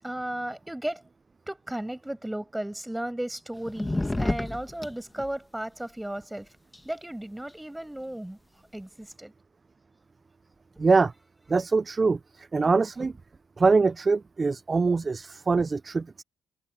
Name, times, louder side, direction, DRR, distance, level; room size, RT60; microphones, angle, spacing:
voice 1, 0.0-1.0 1.5-6.5 6.8-8.4 8.7-9.3, right 1 dB, 5° right, 7.9 m, -35 dB
sound 1, 3.6-5.3 6.7-6.8, left 2 dB, 15° left, 1.9 m, -29 dB
voice 2, 10.8-11.1 11.5-13.1 13.6-16.2, right 4 dB, 30° right, 0.4 m, -23 dB
cardioid pair, 90°, 0 cm